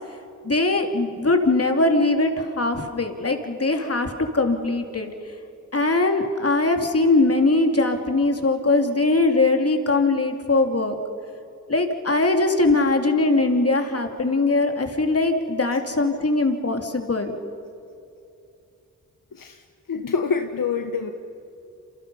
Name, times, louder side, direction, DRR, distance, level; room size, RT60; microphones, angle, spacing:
voice 1, 0.4-5.1 5.7-11.0 11.7-17.3, left 2 dB, 45° left, 4 dB, 2.9 m, -21 dB
voice 2, 19.3-19.6 19.9-21.1, left 5 dB, 75° left, 5 dB, 1.3 m, -26 dB
29.0 x 27.5 x 5.6 m, 2.6 s
cardioid pair, 55°, 33 cm